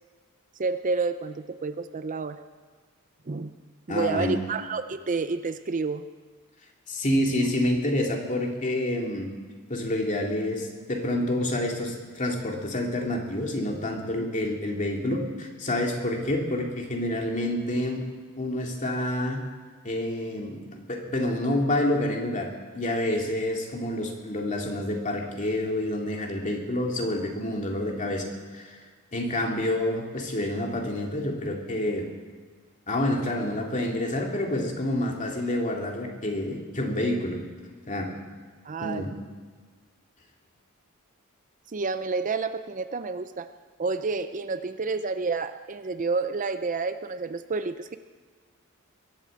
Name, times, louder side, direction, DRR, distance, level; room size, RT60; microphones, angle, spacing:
voice 1, 0.6-2.4 3.3-3.5 3.9-6.0 38.6-39.1 41.7-43.5 43.8-48.0, right 4 dB, 35° right, 10 dB, 0.5 m, -29 dB
voice 2, 3.9-4.4 6.9-9.3 9.7-18.0 18.4-19.4 19.8-22.5 22.7-28.2 28.5-28.8 29.1-32.1 32.9-37.4 37.9-38.1 38.8-39.1, left 1 dB, 35° left, 1 dB, 2.5 m, -28 dB
22.0 x 8.6 x 7.6 m, 1.5 s
head